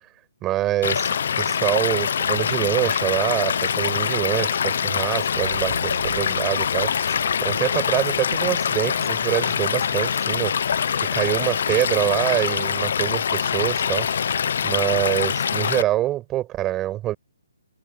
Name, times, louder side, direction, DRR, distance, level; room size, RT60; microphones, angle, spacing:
voice 1, 0.4-10.5 11.0-14.1 14.6-17.2, right 14 dB, 10° right, 5.4 m, -25 dB
Stream / Liquid, 0.8-15.8, left 7 dB, 50° left, 0.7 m, -24 dB
sound 1, 5.3-8.8, right 7 dB, 55° right, 6.2 m, -39 dB
hypercardioid pair, 170°, 0 cm